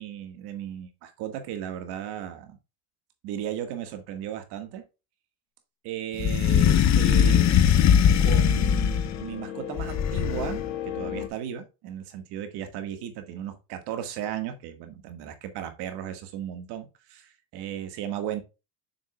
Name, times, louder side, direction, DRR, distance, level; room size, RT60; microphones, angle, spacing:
voice 1, 0.0-2.6 3.2-4.8 5.8-7.5 8.2-18.4, right 10 dB, 65° right, 7 dB, 1.8 m, -35 dB
sound 1, 6.2-9.2 9.8-10.7, left 8 dB, 40° left, 0.8 m, -20 dB
sound 2, 6.8-11.3, left 11 dB, 75° left, 1.5 m, -37 dB
7.6 x 6.1 x 2.3 m, 0.27 s
supercardioid pair, 95°, 43 cm